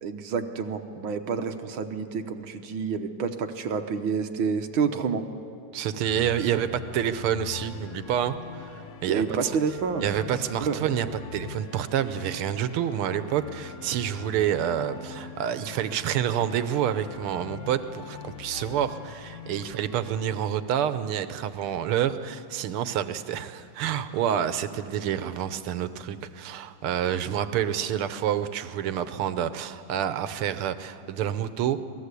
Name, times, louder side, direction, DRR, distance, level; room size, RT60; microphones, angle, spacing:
voice 1, 0.0-5.2 9.1-10.2 10.6-10.8, right 5 dB, 70° right, 7 dB, 1.8 m, -28 dB
voice 2, 5.7-9.6 10.0-11.1 11.3-31.8, right 10 dB, 90° right, 11 dB, 1.8 m, -28 dB
sound 1, 6.0-20.5, left 7 dB, 55° left, 0.9 m, -43 dB
27.0 x 18.5 x 8.3 m, 2.6 s
omnidirectional pair, 2.4 m